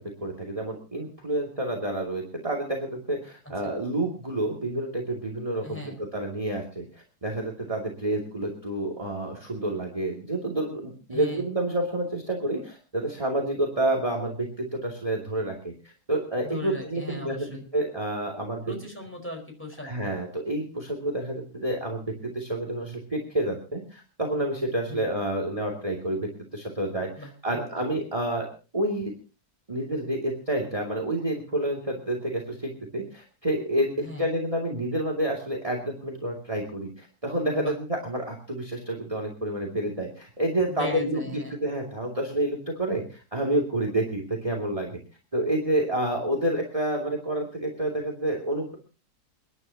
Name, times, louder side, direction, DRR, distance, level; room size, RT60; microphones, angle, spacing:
voice 1, 0.2-18.7 19.8-29.1 29.7-41.2 41.5-45.0 45.3-48.8, right 1 dB, 20° right, 1 dB, 2.7 m, -29 dB
voice 2, 5.6-6.0 11.1-11.5 16.4-17.6 18.6-19.9 24.9-25.1 27.2-27.6 34.0-34.3 37.5-37.8 40.7-41.6, left 2 dB, 5° left, 2 dB, 4.9 m, -38 dB
29.5 x 11.0 x 2.9 m, 0.33 s
omnidirectional pair, 1.8 m